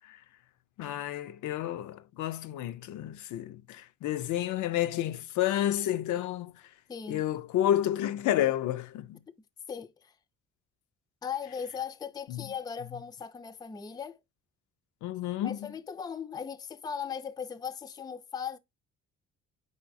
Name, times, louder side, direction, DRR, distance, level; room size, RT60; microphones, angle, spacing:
voice 1, 0.8-6.5 7.1-9.2 12.3-12.5 15.0-15.6, left 12 dB, 75° left, 0.5 m, -30 dB
voice 2, 6.9-7.2 9.3-9.4 9.7-10.1 11.2-14.2 15.4-18.6, left 7 dB, 15° left, 0.3 m, -38 dB
4.9 x 3.8 x 2.5 m
cardioid pair, 90°, 30 cm